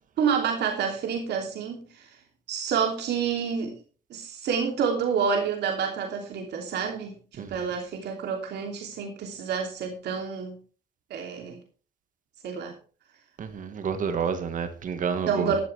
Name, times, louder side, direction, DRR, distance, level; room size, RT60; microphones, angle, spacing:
voice 1, 0.2-2.1 2.5-3.8 4.1-10.6 11.1-11.6 12.4-12.7 15.3-15.6, right 6 dB, 75° right, 3.0 m, -28 dB
voice 2, 13.4-15.6, right 6 dB, 50° right, 1.6 m, -29 dB
14.0 x 12.5 x 3.4 m
cardioid pair, 145°, 17 cm